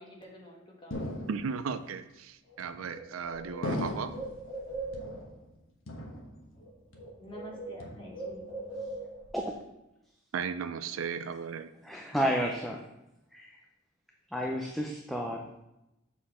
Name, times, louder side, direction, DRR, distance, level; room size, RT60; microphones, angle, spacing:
voice 1, 0.0-1.1 7.2-8.5, equal, 25° left, -2 dB, 1.5 m, -48 dB
sound 1, 0.9-1.8 2.6-3.1 3.6-4.4 4.9-5.5 5.9-6.6 6.9-7.4 7.8-8.4, left 1 dB, 85° left, 1.1 m, -38 dB
voice 2, 1.3-4.1 10.3-11.7, right 6 dB, 85° right, 11 dB, 0.5 m, -36 dB
Bird, 2.5-2.6 2.9-5.4 6.4-6.7 6.9-9.4, right 2 dB, 65° left, 2.5 m, -41 dB
voice 3, 11.8-12.8 13.3-13.5 14.3-15.6, equal, ahead, 0 dB, 0.5 m, -31 dB
7.3 x 4.4 x 4.3 m, 0.91 s
head